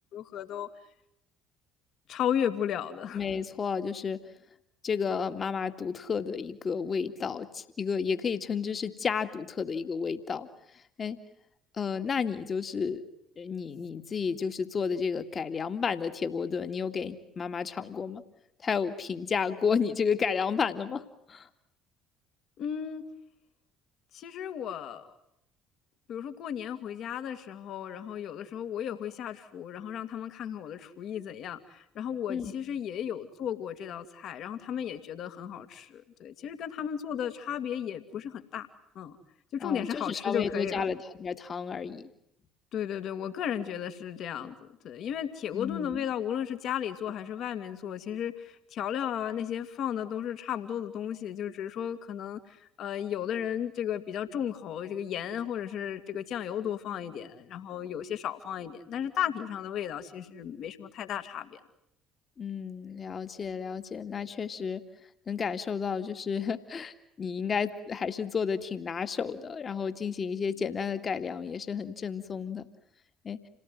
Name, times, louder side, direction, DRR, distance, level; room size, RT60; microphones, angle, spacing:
voice 1, 0.1-0.7 2.1-3.2 22.6-23.0 24.1-25.1 26.1-38.7 39.0-39.2 39.5-40.8 42.7-61.6, left 9 dB, 55° left, 9 dB, 2.2 m, -34 dB
voice 2, 3.1-4.2 4.8-10.5 11.0-11.2 11.8-13.0 13.4-18.2 18.6-21.5 32.3-32.5 39.6-42.1 45.5-46.0 62.4-64.8 65.3-72.7 73.2-73.4, left 6 dB, 35° left, 9 dB, 2.1 m, -32 dB
28.5 x 18.5 x 9.5 m, 0.78 s
figure-of-eight pair, 55°, 0 cm